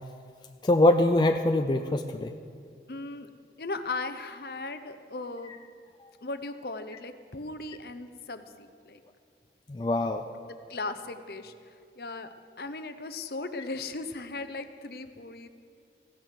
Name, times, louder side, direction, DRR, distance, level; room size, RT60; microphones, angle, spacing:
voice 1, 0.6-2.3 6.0-6.1 9.7-10.2, left 1 dB, 25° left, 6 dB, 0.4 m, -23 dB
voice 2, 2.9-3.3 3.6-5.6 6.2-9.0 10.6-11.5 12.0-15.5, left 3 dB, 55° left, 10 dB, 0.8 m, -37 dB
15.5 x 10.0 x 6.5 m, 2.4 s
head